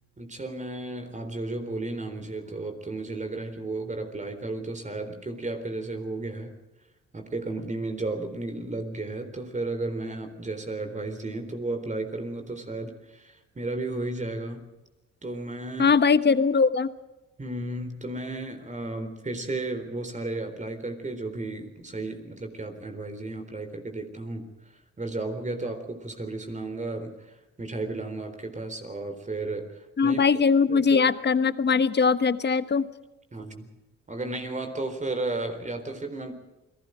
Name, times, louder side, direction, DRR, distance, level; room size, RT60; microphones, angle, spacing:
voice 1, 0.2-6.5 7.1-14.7 15.2-16.0 17.4-24.5 25.0-30.2 30.7-31.2 33.3-33.7 34.1-36.3, right 2 dB, 25° right, 6 dB, 4.0 m, -33 dB
voice 2, 15.8-16.9 30.0-32.8, left 5 dB, 35° left, 13 dB, 1.3 m, -21 dB
29.0 x 19.5 x 5.1 m, 1.0 s
cardioid pair, 90°, 30 cm